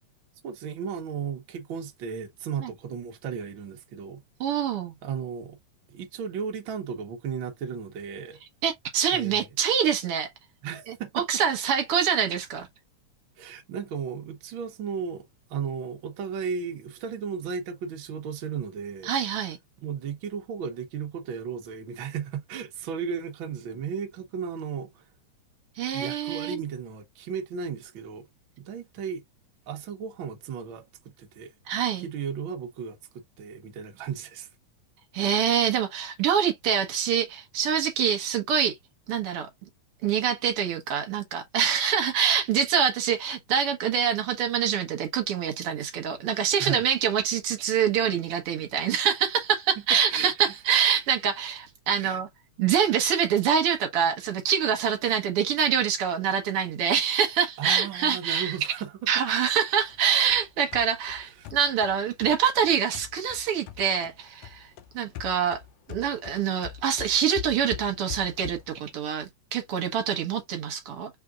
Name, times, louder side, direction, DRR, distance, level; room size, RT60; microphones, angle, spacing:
voice 1, 0.4-4.2 5.0-5.6 5.9-8.4 9.1-9.4 10.6-11.3 13.4-19.1 19.8-25.0 25.9-28.2 28.6-29.2 29.7-30.9 31.2-31.5 31.9-33.0 33.4-34.5 46.6-46.8 50.1-50.3 52.0-52.2 57.6-58.9 61.4-61.5, right 6 dB, 80° right, 1.1 m, -35 dB
voice 2, 4.4-4.9 8.6-10.3 10.9-12.7 19.0-19.6 25.8-26.6 31.7-32.1 35.1-38.8 39.1-39.5 40.0-52.3 52.6-58.5 59.1-64.7 64.9-65.6 65.9-71.1, right 8 dB, 60° right, 1.6 m, -25 dB
sound 1, 59.9-64.2 64.4-68.8, left 9 dB, 90° left, 1.5 m, -42 dB
5.1 x 3.6 x 2.4 m
omnidirectional pair, 3.7 m